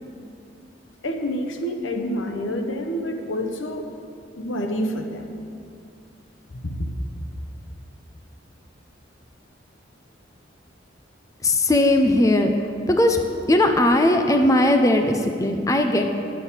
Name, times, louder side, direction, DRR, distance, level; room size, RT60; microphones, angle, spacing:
voice 1, 1.0-3.9 4.4-5.4 6.5-7.0, equal, 90° left, 4 dB, 1.0 m, -28 dB
voice 2, 11.4-13.2 13.5-16.0, left 1 dB, 15° left, 5 dB, 0.5 m, -18 dB
9.7 x 6.4 x 7.3 m, 2.4 s
head